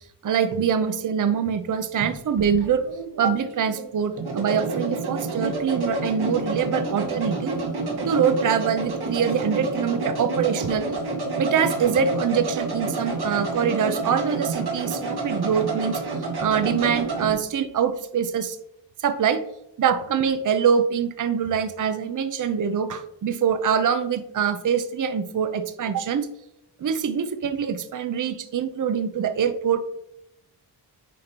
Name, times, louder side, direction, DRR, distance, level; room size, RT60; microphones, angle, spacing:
voice 1, 0.2-2.9 3.2-7.6 8.0-10.9 11.4-16.0 16.4-18.6 19.0-19.4 19.8-26.3 26.8-29.8, right 7 dB, 45° right, 10 dB, 0.6 m, -24 dB
sound 1, 2.0-17.3, right 3 dB, 65° right, 1.6 m, -29 dB
9.2 x 5.2 x 2.9 m, 0.79 s
wide cardioid pair, 140°, 42 cm